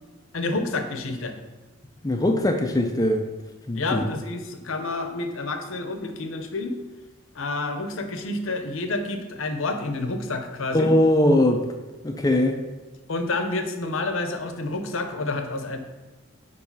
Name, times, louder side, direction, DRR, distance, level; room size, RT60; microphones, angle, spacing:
voice 1, 0.3-1.3 3.7-6.7 7.3-10.9 13.1-15.8, left 2 dB, 65° left, 6 dB, 0.7 m, -29 dB
voice 2, 2.0-3.3 3.7-4.0 10.7-11.6 12.0-12.6, left 1 dB, 15° left, 4 dB, 0.4 m, -20 dB
4.9 x 4.8 x 5.3 m, 1.2 s
head